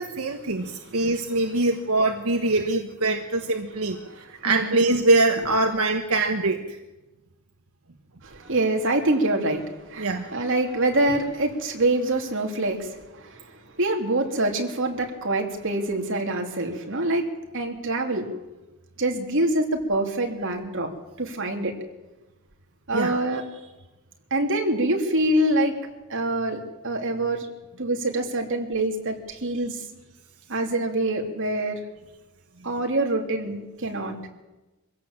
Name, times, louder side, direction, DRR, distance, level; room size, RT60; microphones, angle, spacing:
voice 1, 0.0-6.6 10.0-10.3 22.9-23.2, right 2 dB, 85° right, 5 dB, 1.3 m, -23 dB
voice 2, 0.7-1.1 1.5-1.6 4.0-4.9 8.2-17.3 17.5-18.3 19.0-20.9 21.2-21.7 22.9-23.4 24.3-25.7 26.1-27.5 27.8-29.8 30.5-31.8 32.6-34.2, right 1 dB, 60° right, 2 dB, 3.1 m, -25 dB
24.0 x 16.5 x 7.5 m, 1.1 s
head